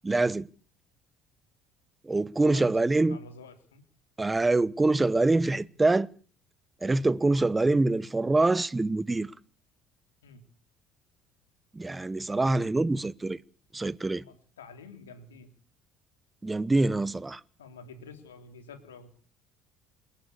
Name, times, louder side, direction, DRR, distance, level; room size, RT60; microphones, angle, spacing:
voice 1, 0.0-0.5 2.0-3.2 4.2-6.1 6.8-9.3 11.7-13.4 13.7-14.2 16.4-17.4, right 2 dB, 15° right, 1.1 m, -25 dB
voice 2, 2.4-3.8 10.2-10.4 14.2-15.5 17.6-19.1, left 4 dB, 90° left, 3.4 m, -48 dB
28.5 x 11.5 x 8.4 m
hypercardioid pair, 65°, 0 cm